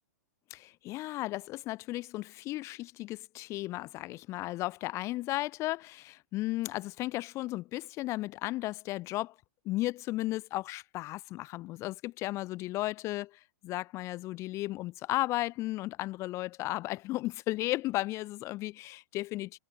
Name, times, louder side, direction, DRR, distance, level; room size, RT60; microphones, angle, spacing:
voice 1, 0.5-9.3 9.7-19.6, left 18 dB, 30° left, 0.5 m, -35 dB
hypercardioid pair, 130°, 9 cm